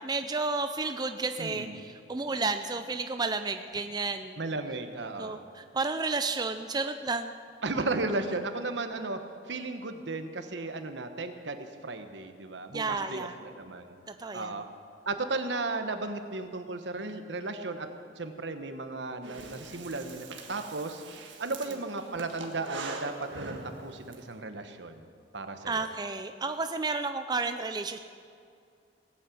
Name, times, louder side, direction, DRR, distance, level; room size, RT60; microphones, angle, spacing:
voice 1, 0.0-4.3 5.2-7.3 12.7-13.3 14.2-14.5 25.7-28.0, right 3 dB, 25° right, 8 dB, 0.5 m, -32 dB
voice 2, 1.4-1.8 4.4-5.4 7.6-9.2 9.5-14.0 14.3-14.7 15.1-17.9 18.2-21.0 21.4-25.1 25.3-25.9, right 3 dB, 75° right, 7 dB, 1.2 m, -35 dB
Breathing, 19.2-24.2, right 3 dB, 90° right, 1.7 m, -42 dB
18.5 x 8.7 x 7.9 m, 2.3 s
head